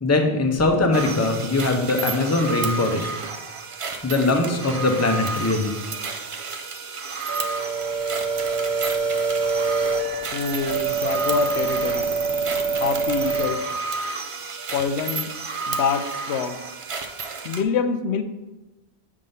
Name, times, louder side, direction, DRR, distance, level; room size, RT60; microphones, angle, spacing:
voice 1, 0.0-3.1 4.0-5.7, left 2 dB, 15° left, 3 dB, 0.6 m, -21 dB
sound 1, 0.9-17.6, right 4 dB, 45° right, 0.4 m, -32 dB
sound 2, 7.3-13.5, right 4 dB, 75° right, 1.2 m, -25 dB
voice 2, 10.3-12.1 12.8-13.6 14.7-15.3 15.7-16.6 17.4-18.2, left 6 dB, 90° left, 8 dB, 0.9 m, -25 dB
7.6 x 3.7 x 5.4 m, 1.1 s
omnidirectional pair, 1.1 m